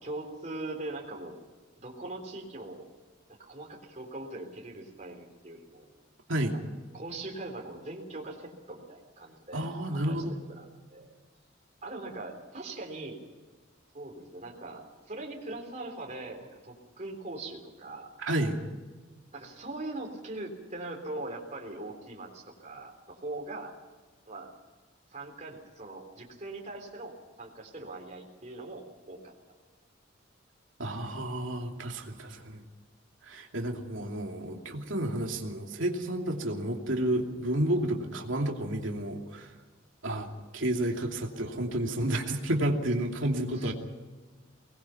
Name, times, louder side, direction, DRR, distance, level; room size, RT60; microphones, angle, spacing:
voice 1, 0.0-1.4 1.8-2.9 3.5-5.9 6.9-11.1 11.8-13.2 13.9-18.1 19.3-23.7 24.3-24.5 25.1-29.3 40.1-40.2 43.6-43.7, right 2 dB, 40° right, 0 dB, 3.6 m, -41 dB
voice 2, 9.5-10.3 18.2-18.6 30.8-32.6 33.2-39.5 40.0-43.7, right 1 dB, 75° right, 1 dB, 2.7 m, -31 dB
24.5 x 20.0 x 5.8 m, 1.3 s
head